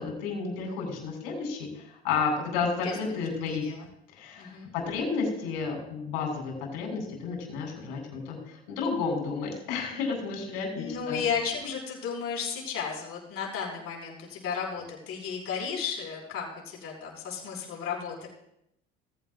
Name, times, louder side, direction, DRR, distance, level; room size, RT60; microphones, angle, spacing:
voice 1, 0.0-3.6 4.1-11.2, left 5 dB, 70° left, 1 dB, 4.2 m, -32 dB
voice 2, 3.4-3.9 4.4-4.7 10.7-18.3, left 6 dB, 45° left, -3 dB, 5.2 m, -34 dB
18.5 x 14.5 x 2.4 m, 0.78 s
figure-of-eight pair, 60°, 31 cm